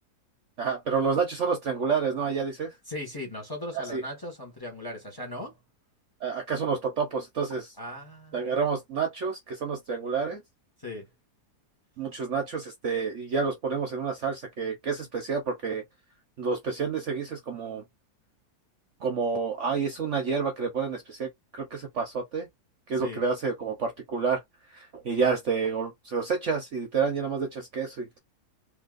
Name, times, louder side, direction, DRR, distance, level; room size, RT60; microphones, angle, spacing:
voice 1, 0.6-2.8 3.7-4.0 6.2-7.7 8.3-10.4 12.0-15.8 16.4-17.8 19.0-22.5 22.9-24.4 24.7-28.2, right 5 dB, 55° right, 0.9 m, -29 dB
voice 2, 2.9-5.6 7.8-8.5 10.8-11.1 22.9-23.2, left 1 dB, 15° left, 1.2 m, -38 dB
3.3 x 2.8 x 2.4 m
omnidirectional pair, 1.8 m